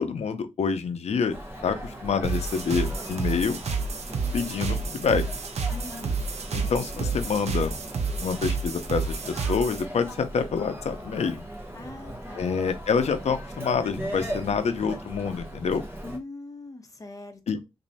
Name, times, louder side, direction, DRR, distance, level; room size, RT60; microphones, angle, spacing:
voice 1, 0.0-1.4 1.6-3.6 4.3-5.3 6.5-7.7 8.2-11.4 12.4-15.8 17.5-17.6, left 5 dB, 75° left, 0.6 m, -27 dB
Human voice, 1.3-16.2, right 1 dB, 20° right, 1.0 m, -39 dB
sound 1, 2.2-9.8, right 4 dB, 80° right, 0.6 m, -30 dB
voice 2, 5.7-6.2 11.7-12.5 16.0-17.6, left 2 dB, 30° left, 0.9 m, -42 dB
3.1 x 2.6 x 4.0 m
wide cardioid pair, 95°, 11 cm